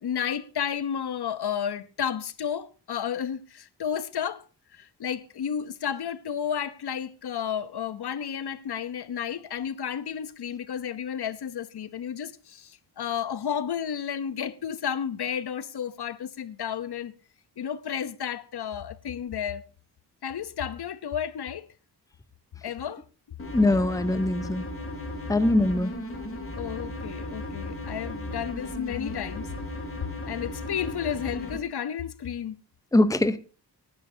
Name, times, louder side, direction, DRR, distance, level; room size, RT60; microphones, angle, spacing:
voice 1, 0.0-4.4 4.7-17.1 17.6-19.6 20.2-21.7 22.6-23.0 26.6-29.5 30.2-32.6, left 8 dB, 70° left, 0.8 m, -32 dB
sound 1, 23.4-31.6, left 1 dB, 30° left, 2.9 m, -36 dB
voice 2, 23.5-24.6 25.3-25.9 32.9-33.4, left 2 dB, 10° left, 0.8 m, -22 dB
24.5 x 9.7 x 2.7 m
wide cardioid pair, 130°, 41 cm